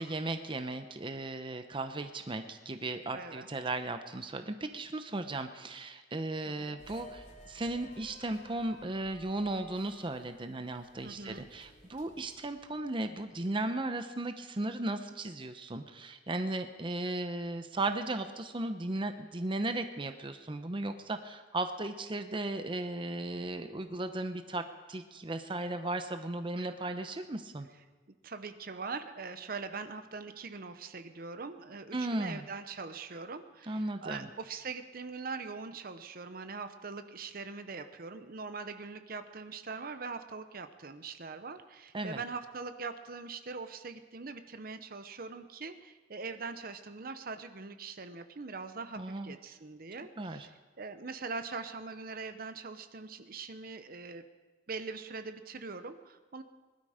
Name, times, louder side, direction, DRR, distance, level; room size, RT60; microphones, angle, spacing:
voice 1, 0.0-27.7 31.9-32.4 33.7-34.3 41.9-42.2 49.0-49.4 50.2-50.5, right 2 dB, 30° right, 8 dB, 0.7 m, -36 dB
voice 2, 3.1-3.5 6.4-6.8 11.0-11.5 26.6-26.9 28.2-50.5 50.8-54.2 54.7-56.4, right 4 dB, 55° right, 10 dB, 0.9 m, -42 dB
sound 1, 6.8-13.3, left 1 dB, 45° left, 2.8 m, -56 dB
20.5 x 12.5 x 5.0 m, 1.3 s
head